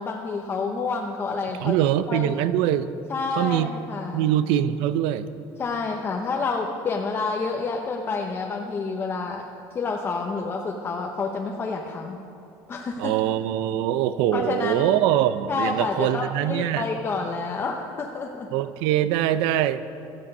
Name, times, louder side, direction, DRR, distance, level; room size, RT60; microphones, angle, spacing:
voice 1, 0.0-1.7 2.1-2.4 3.1-4.3 5.6-9.4 9.7-12.2 12.7-13.1 14.3-15.0 15.5-18.5, left 4 dB, 25° left, 1 dB, 0.8 m, -29 dB
voice 2, 1.6-2.9 3.4-3.7 4.1-5.3 13.0-16.9 18.5-19.8, right 11 dB, 85° right, 13 dB, 0.6 m, -23 dB
16.5 x 13.0 x 5.4 m, 2.8 s
cardioid pair, 160°, 9 cm